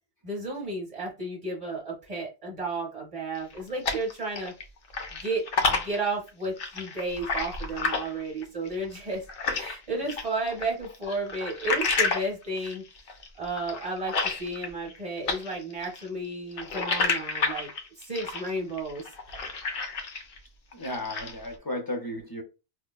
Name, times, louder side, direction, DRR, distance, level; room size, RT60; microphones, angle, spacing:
voice 1, 0.2-4.5 5.2-9.2 9.5-12.8 13.4-14.1 14.4-17.7 18.1-19.1, right 2 dB, 35° right, 0.8 m, -32 dB
sound 1, 3.4-4.6 4.9-9.8 10.1-15.0 15.3-20.4 20.7-21.5, left 4 dB, 60° left, 0.8 m, -30 dB
voice 2, 20.7-22.4, left 1 dB, 25° left, 0.6 m, -34 dB
4.6 x 2.1 x 2.2 m
omnidirectional pair, 1.1 m